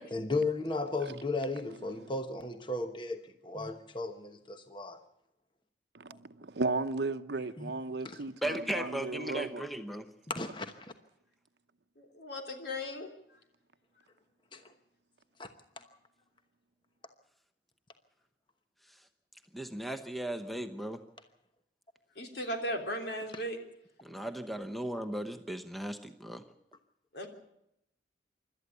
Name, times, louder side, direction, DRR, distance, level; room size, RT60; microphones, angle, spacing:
voice 1, 0.1-5.0 7.6-7.7 8.0-8.2 10.3-10.9 14.5-14.7 15.4-15.8 23.3-23.4, left 3 dB, 25° left, 1.1 m, -35 dB
voice 2, 5.9-9.6, right 3 dB, 70° right, 0.8 m, -35 dB
voice 3, 8.4-10.1 19.5-21.0 24.0-26.4, right 1 dB, ahead, 0.9 m, -36 dB
voice 4, 12.0-13.1 22.2-23.6 27.1-27.3, equal, 65° left, 3.4 m, -36 dB
26.0 x 13.0 x 8.1 m
head